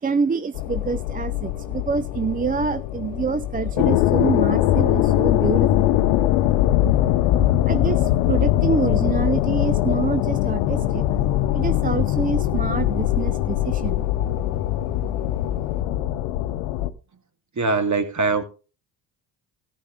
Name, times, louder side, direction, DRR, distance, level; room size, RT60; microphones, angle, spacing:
voice 1, 0.0-5.9 6.6-6.7 7.1-7.2 7.6-11.1 11.5-14.1 15.0-15.1, right 5 dB, 20° right, 0.5 m, -26 dB
sound 1, 0.5-16.9, left 13 dB, 75° left, 0.9 m, -21 dB
voice 2, 17.5-18.4, right 3 dB, 35° right, 2.3 m, -22 dB
14.0 x 11.0 x 3.8 m
hypercardioid pair, 55°, 49 cm